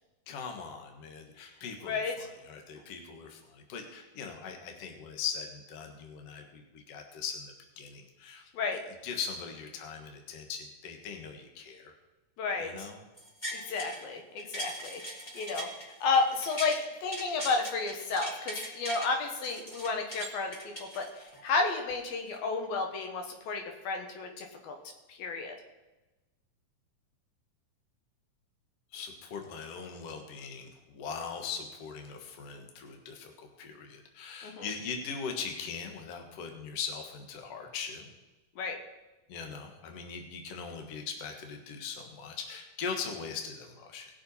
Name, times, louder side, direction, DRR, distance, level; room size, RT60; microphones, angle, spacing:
voice 1, 0.3-8.5 9.0-11.9 12.6-13.0 28.9-38.1 39.3-44.1, left 6 dB, 55° left, 4 dB, 2.0 m, -40 dB
voice 2, 1.8-2.3 8.5-8.8 12.4-12.9 13.5-15.0 15.3-15.7 16.0-21.1 21.4-24.7 25.1-25.5 34.4-34.7 38.6-38.8, left 4 dB, 85° left, 3 dB, 3.2 m, -32 dB
sound 1, 13.2-14.0 14.4-16.8 17.1-19.1 19.4-21.4 21.9-22.0, equal, 15° left, 1.9 m, -40 dB
19.0 x 6.8 x 4.1 m, 1.1 s
omnidirectional pair, 4.0 m